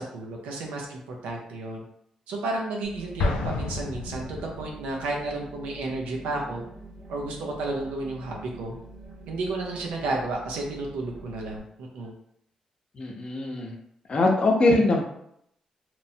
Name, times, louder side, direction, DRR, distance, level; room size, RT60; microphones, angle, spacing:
voice 1, 0.0-1.8 2.3-6.6 7.1-8.7 9.3-12.1, right 2 dB, 85° right, 0 dB, 0.5 m, -32 dB
sound 1, 2.8-11.6, right 2 dB, 65° right, 0.9 m, -45 dB
Explosion, 3.2-4.9, left 3 dB, 85° left, 0.3 m, -30 dB
voice 2, 13.0-13.8 14.1-15.0, left 2 dB, 50° left, 0 dB, 0.7 m, -22 dB
3.0 x 2.0 x 2.7 m, 0.72 s
supercardioid pair, 55°, 2 cm